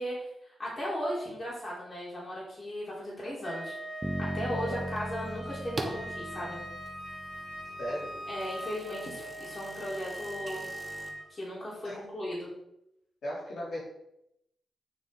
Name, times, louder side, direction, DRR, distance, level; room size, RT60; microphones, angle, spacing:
voice 1, 0.0-3.7 4.2-6.6 8.3-10.7 11.3-12.5, equal, 30° left, -6 dB, 3.6 m, -37 dB
Wind instrument woodwind instrument, 3.4-11.3, equal, 50° left, 2.4 m, -41 dB
Bass guitar, 4.0-7.9, equal, 5° right, 0.5 m, -39 dB
voice 2, 4.5-4.8 7.8-8.1 11.8-12.0 13.2-13.8, equal, 65° left, -6 dB, 3.2 m, -37 dB
sound 1, 4.9-6.1 6.7-11.1, right 2 dB, 25° right, 1.0 m, -44 dB
8.9 x 6.9 x 3.8 m, 0.81 s
wide cardioid pair, 160°, 0 cm